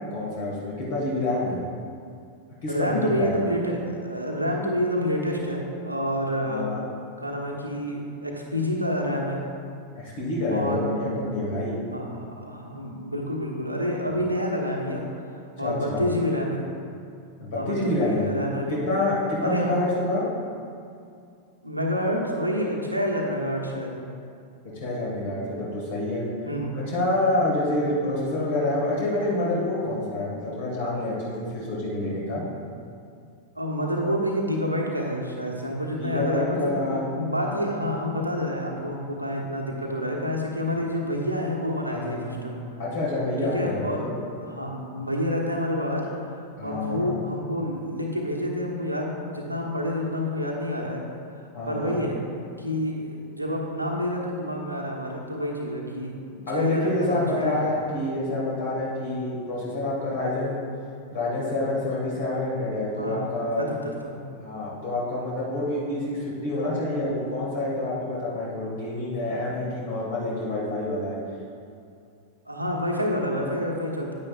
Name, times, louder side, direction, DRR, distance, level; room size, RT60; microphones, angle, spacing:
voice 1, 0.1-1.6 2.6-3.4 6.4-6.8 10.0-11.8 14.1-14.2 15.6-16.1 17.4-18.3 18.7-20.2 24.7-26.3 26.7-32.4 36.0-37.0 41.9-42.3 42.8-44.1 46.6-47.2 51.5-52.0 56.5-60.6 61.1-63.7 64.4-71.2, left 2 dB, 55° left, -5 dB, 1.8 m, -27 dB
voice 2, 2.7-6.7 7.2-9.4 10.5-11.0 11.9-16.6 17.5-18.8 19.4-19.9 21.6-24.1 26.4-26.8 33.5-42.6 43.5-44.0 44.4-46.1 46.4-51.0 51.3-52.2 52.6-57.6 63.0-63.3 63.6-64.2 72.4-74.1, equal, 90° right, -1 dB, 1.2 m, -28 dB
9.6 x 9.5 x 2.4 m, 2.5 s
figure-of-eight pair, 90°, 0 cm